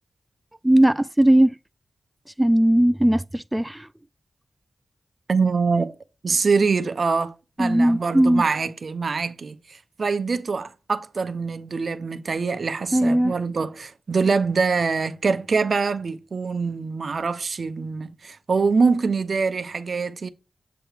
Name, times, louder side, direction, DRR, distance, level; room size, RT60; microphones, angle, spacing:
voice 1, 0.6-1.6 2.4-3.9 7.6-8.5 12.9-13.3, right 1 dB, 10° right, 0.3 m, -18 dB
voice 2, 5.3-5.9 6.2-20.3, right 4 dB, 65° right, 0.7 m, -24 dB
7.7 x 3.1 x 4.9 m
cardioid pair, 55°, 0 cm